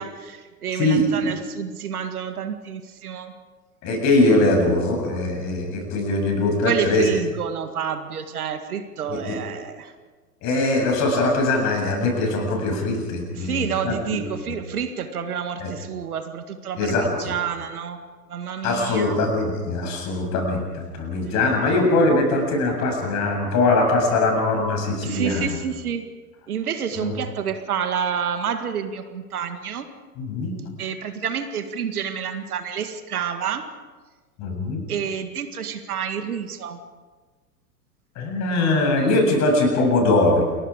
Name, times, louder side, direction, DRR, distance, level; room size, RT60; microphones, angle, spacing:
voice 1, 0.0-3.3 6.6-9.9 13.3-18.0 18.3-19.2 21.3-21.4 25.0-26.0 26.5-29.9 30.8-33.7 34.9-36.8, right 7 dB, 60° right, 8 dB, 2.0 m, -29 dB
voice 2, 0.8-1.3 3.8-7.0 9.1-9.4 10.4-14.2 14.5-14.6 15.6-15.7 16.8-17.1 18.6-25.4 27.0-27.1 30.2-30.5 34.4-34.8 38.2-40.4, left 2 dB, 35° left, 2 dB, 7.6 m, -21 dB
28.5 x 23.0 x 5.0 m, 1.4 s
figure-of-eight pair, 100°, 48 cm